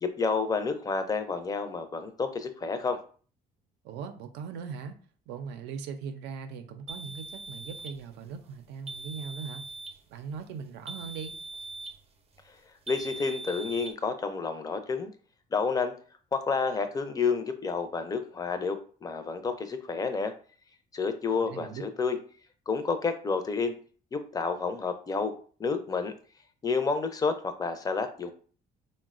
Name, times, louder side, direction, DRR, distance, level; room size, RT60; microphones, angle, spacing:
voice 1, 0.0-3.0 12.9-15.1 15.5-15.9 16.3-20.3 20.9-22.2 22.7-23.8 24.1-25.3 25.6-26.1 26.6-28.3, left 4 dB, 20° left, 8 dB, 0.4 m, -30 dB
voice 2, 3.8-4.9 5.3-9.6 10.1-11.3 21.3-21.8, right 6 dB, 85° right, 7 dB, 0.5 m, -40 dB
sound 1, 6.9-8.0 8.9-10.0 10.9-12.0 12.9-13.9, right 2 dB, 35° right, 0.6 m, -41 dB
3.8 x 2.1 x 2.4 m, 0.41 s
cardioid pair, 110°, 17 cm